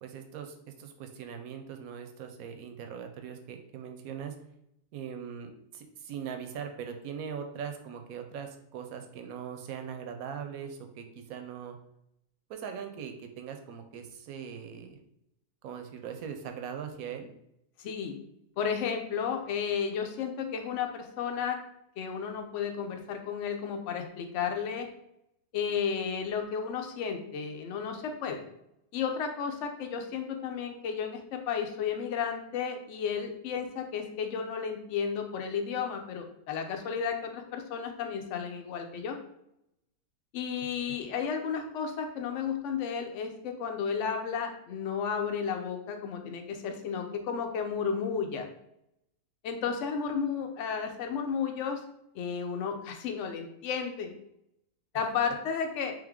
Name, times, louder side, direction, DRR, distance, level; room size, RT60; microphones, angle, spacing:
voice 1, 0.0-4.3 4.9-11.8 12.5-15.0 15.6-17.3 19.4-19.5, right 7 dB, 70° right, 6 dB, 1.0 m, -40 dB
voice 2, 17.8-18.2 18.6-21.6 22.0-24.9 25.5-28.4 28.9-39.2 40.3-48.5 49.4-51.8 52.1-54.2 54.9-55.9, left 6 dB, 60° left, 5 dB, 0.8 m, -33 dB
3.5 x 3.2 x 3.6 m, 0.78 s
omnidirectional pair, 1.7 m